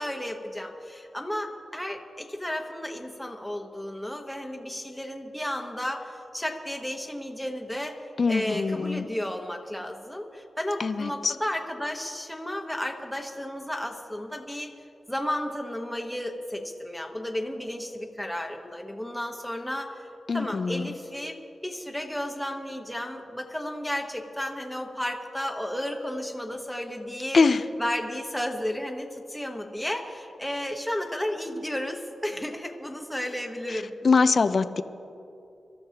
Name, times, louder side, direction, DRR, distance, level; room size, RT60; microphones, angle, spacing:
voice 1, 0.0-8.0 8.3-14.7 15.1-20.1 20.3-27.4 27.8-33.9, left 1 dB, ahead, 1 dB, 1.2 m, -33 dB
voice 2, 8.2-9.1 10.8-11.4 20.3-20.9 27.3-27.6 33.7-34.8, left 4 dB, 50° left, 12 dB, 0.5 m, -23 dB
25.5 x 13.0 x 2.9 m, 2.7 s
wide cardioid pair, 95°, 0 cm